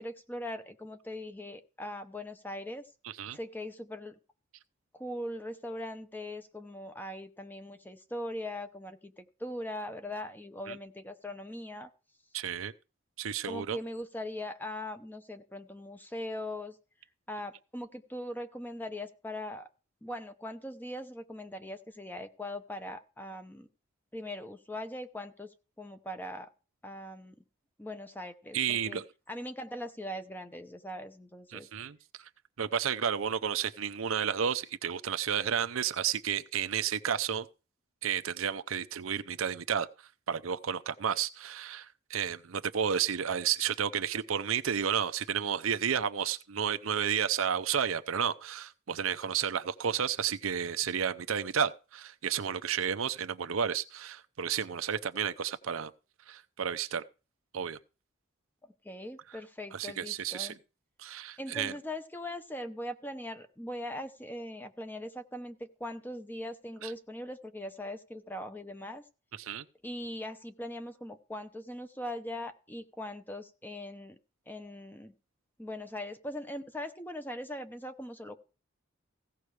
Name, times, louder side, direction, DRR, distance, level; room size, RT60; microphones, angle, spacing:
voice 1, 0.0-2.9 3.3-4.1 4.9-11.9 13.5-16.8 17.3-19.7 20.0-23.7 24.1-26.5 26.8-27.3 27.8-31.7 58.8-60.6 61.4-69.0 69.8-74.2 74.5-75.1 75.6-78.4, left 1 dB, 10° left, 0.8 m, -40 dB
voice 2, 3.0-3.4 10.7-10.8 12.3-12.7 13.2-13.8 28.5-29.0 31.5-32.0 32.6-37.5 38.0-39.9 40.3-55.9 56.3-57.0 57.5-57.8 59.7-60.5 61.0-61.7 66.8-66.9 69.4-69.6, right 8 dB, 85° right, 0.6 m, -32 dB
16.0 x 5.4 x 4.8 m
head